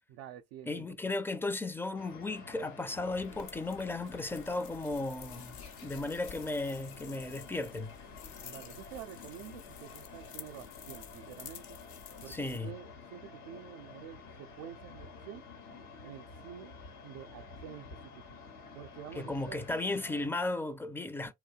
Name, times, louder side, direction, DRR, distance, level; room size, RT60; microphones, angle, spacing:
voice 1, 0.1-0.9 8.4-11.8 12.2-15.4 16.0-16.8 17.0-17.9 18.1-18.4 18.7-19.6, right 10 dB, 75° right, 0.6 m, -48 dB
voice 2, 0.7-8.0 12.3-12.8 19.2-21.3, left 2 dB, 5° left, 0.4 m, -35 dB
sound 1, 2.0-20.3, left 4 dB, 85° left, 1.0 m, -50 dB
sound 2, 3.2-12.6, left 8 dB, 60° left, 0.8 m, -51 dB
2.6 x 2.1 x 2.4 m
hypercardioid pair, 50°, 48 cm